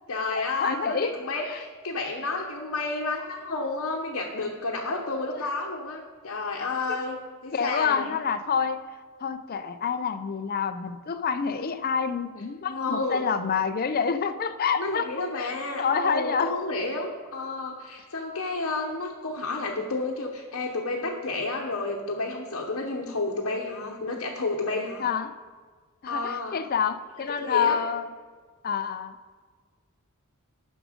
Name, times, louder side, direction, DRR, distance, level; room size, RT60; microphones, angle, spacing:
voice 1, 0.1-8.1 12.6-13.3 14.8-25.1 26.1-26.6 27.4-27.8, left 3 dB, 65° left, -2 dB, 0.9 m, -31 dB
voice 2, 0.6-1.2 1.5-1.6 5.1-5.2 6.6-7.0 7.5-8.8 9.2-16.5 25.0-25.3 26.0-28.1 28.6-29.2, left 6 dB, 40° left, 11 dB, 0.4 m, -28 dB
9.8 x 6.2 x 5.0 m, 1.5 s
head